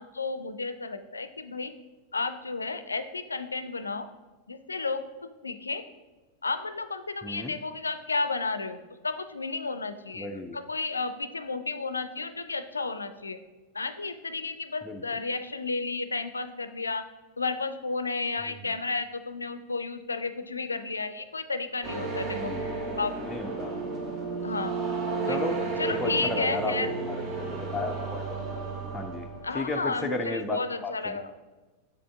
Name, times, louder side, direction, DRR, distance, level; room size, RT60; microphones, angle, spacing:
voice 1, 0.0-1.7 2.1-4.1 4.5-5.0 5.4-5.8 6.4-13.4 13.7-17.0 17.4-22.5 23.0-23.1 24.4-26.9 29.4-31.3, left 3 dB, 80° left, 11 dB, 0.3 m, -32 dB
voice 2, 7.2-7.6 10.1-10.6 14.8-15.0 22.3-22.7 23.2-23.8 25.3-25.6 25.8-27.5 27.7-28.5 28.9-29.3 29.5-31.2, left 2 dB, 10° left, 2 dB, 0.4 m, -34 dB
sound 1, 21.8-29.7, right 4 dB, 35° right, 1.1 m, -33 dB
6.9 x 5.1 x 3.4 m, 1.2 s
figure-of-eight pair, 90°, 0 cm